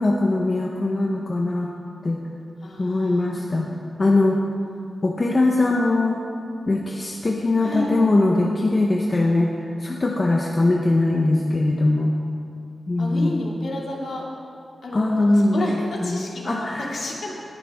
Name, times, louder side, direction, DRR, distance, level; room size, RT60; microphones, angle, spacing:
voice 1, 0.0-1.7 2.0-2.2 2.8-3.7 4.0-4.4 5.0-6.2 6.7-12.1 12.9-13.5 14.9-16.9, left 2 dB, 35° left, -1 dB, 0.9 m, -21 dB
voice 2, 2.6-3.5 7.6-8.0 13.0-14.3 14.8-17.3, left 1 dB, 65° left, -3 dB, 2.5 m, -31 dB
19.0 x 10.5 x 3.6 m, 2.5 s
wide cardioid pair, 120°, 0 cm